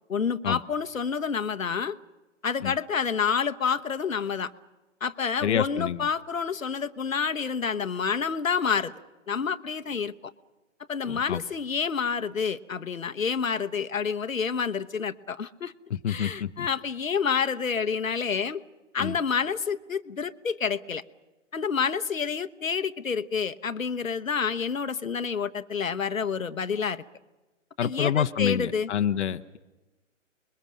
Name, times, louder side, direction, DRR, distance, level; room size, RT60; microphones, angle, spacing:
voice 1, 0.1-2.0 2.4-4.5 5.0-8.9 9.3-10.3 10.9-15.7 16.1-18.6 18.9-21.0 21.5-27.0 27.8-28.9, left 6 dB, 85° left, 9 dB, 1.1 m, -28 dB
voice 2, 5.4-6.0 11.1-11.4 15.9-16.7 19.0-19.2 27.8-29.6, left 9 dB, 60° left, 8 dB, 1.0 m, -27 dB
30.0 x 21.5 x 6.4 m, 1.1 s
figure-of-eight pair, 135°, 39 cm